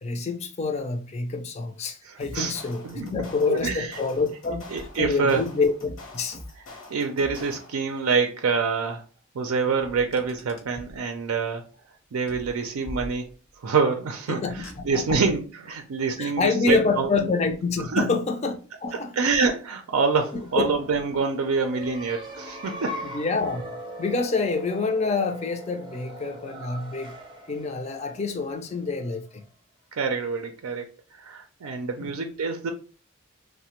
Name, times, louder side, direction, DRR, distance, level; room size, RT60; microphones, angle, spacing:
voice 1, 0.0-4.7 5.0-6.4 14.3-15.2 16.2-19.1 20.6-20.7 23.1-27.1 27.5-29.4 32.0-32.1, left 4 dB, 30° left, 0.4 m, -27 dB
voice 2, 2.0-2.5 2.8-3.1 3.5-3.9 4.7-5.4 6.9-9.0 9.3-11.6 12.1-13.3 13.6-17.1 17.9-18.0 18.9-23.0 29.9-30.9 31.1-32.7, right 5 dB, 85° right, 0.4 m, -26 dB
sound 1, 2.2-7.9, left 1 dB, 60° left, 0.7 m, -43 dB
Car, 10.0-11.0 12.3-13.6 14.4-15.3, equal, 85° left, 1.0 m, -43 dB
sound 2, 19.9-29.4, equal, 20° right, 0.5 m, -40 dB
3.2 x 2.1 x 2.9 m
head